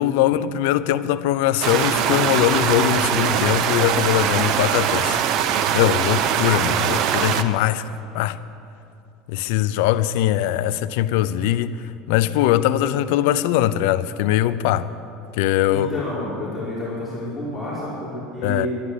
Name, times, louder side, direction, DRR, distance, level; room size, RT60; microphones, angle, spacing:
voice 1, 0.0-5.2 5.7-7.8 8.1-8.4 9.3-14.9 15.4-16.0 18.4-18.7, left 12 dB, 75° left, 0.6 m, -21 dB
sound 1, 1.6-7.4, right 9 dB, 50° right, 0.8 m, -21 dB
voice 2, 15.7-18.7, left 1 dB, 10° left, 5.0 m, -29 dB
12.0 x 11.0 x 9.9 m
supercardioid pair, 140°, 0 cm